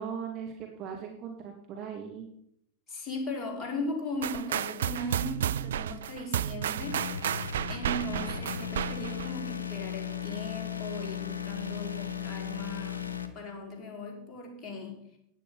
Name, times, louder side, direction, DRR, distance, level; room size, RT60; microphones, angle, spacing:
voice 1, 0.0-2.3, right 7 dB, 35° right, 1 dB, 2.4 m, -39 dB
voice 2, 2.9-7.0 7.7-13.1 13.3-15.0, left 1 dB, 25° left, 1 dB, 4.6 m, -38 dB
sound 1, 4.2-9.3, right 10 dB, 60° right, 0.4 m, -32 dB
sound 2, 6.8-13.3, left 8 dB, 70° left, 1.4 m, -36 dB
15.0 x 10.0 x 5.7 m, 0.74 s
figure-of-eight pair, 90°, 0 cm